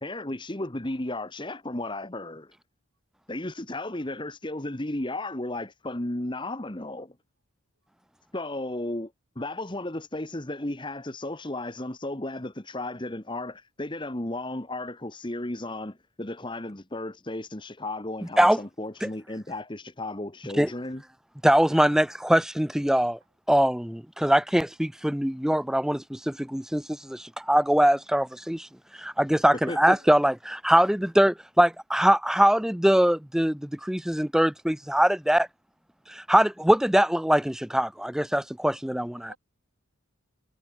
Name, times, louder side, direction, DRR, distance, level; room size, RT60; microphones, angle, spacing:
voice 1, 0.0-2.5 3.3-7.1 8.3-21.0 29.7-30.0, left 1 dB, 20° left, 1.3 m, -34 dB
voice 2, 3.9-4.2 21.6-22.0 29.4-30.1 39.1-39.4, right 3 dB, 65° right, 5.7 m, -53 dB
voice 3, 21.4-23.2 23.5-28.7 28.9-35.5 36.1-39.3, equal, ahead, 0.4 m, -22 dB
head